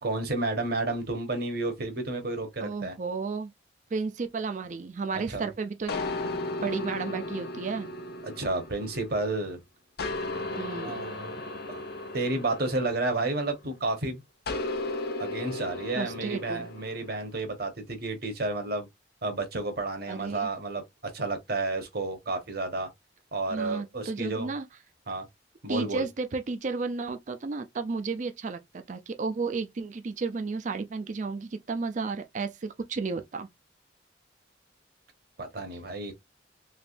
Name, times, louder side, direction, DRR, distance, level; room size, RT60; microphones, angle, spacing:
voice 1, 0.0-2.9 5.1-5.4 8.2-9.6 10.6-11.4 11.7-11.8 12.1-14.2 15.2-18.9 19.2-22.9 23.3-24.5 25.1-25.2 25.6-26.0 35.4-36.1, right 2 dB, 60° right, 1.1 m, -31 dB
voice 2, 2.6-3.5 3.9-7.9 10.6-11.0 16.0-16.7 20.1-20.5 23.5-24.7 25.7-33.5, right 4 dB, 45° right, 0.4 m, -33 dB
sound 1, 5.9-9.5 10.0-13.7 14.5-17.1, left 2 dB, 60° left, 0.7 m, -35 dB
3.3 x 3.1 x 2.5 m
head